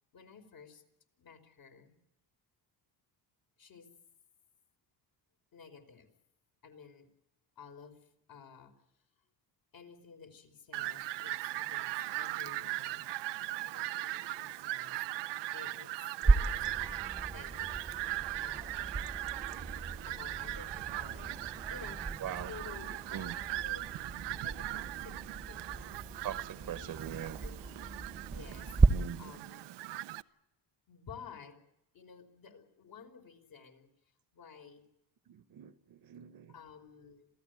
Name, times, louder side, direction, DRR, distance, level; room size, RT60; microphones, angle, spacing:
voice 1, 0.1-0.8 1.2-2.0 3.6-3.9 5.5-6.1 6.6-7.1 7.6-8.7 9.7-15.9 16.2-17.0 17.3-17.8 18.4-19.1 20.1-22.0 22.4-23.8 24.4-25.2 25.5-26.0 26.6-29.9 30.9-31.6 31.9-33.9 34.3-34.8 36.5-37.3, left 6 dB, 55° left, 4.7 m, -53 dB
Fowl, 10.7-30.2, right 17 dB, 90° right, 0.8 m, -39 dB
sound 1, 16.2-28.9, right 3 dB, 15° right, 1.2 m, -34 dB
voice 2, 22.2-22.5 23.1-23.4 26.2-27.4 28.9-29.3 35.3-36.5, right 10 dB, 55° right, 1.2 m, -42 dB
27.0 x 16.5 x 9.2 m
cardioid pair, 125°, 41 cm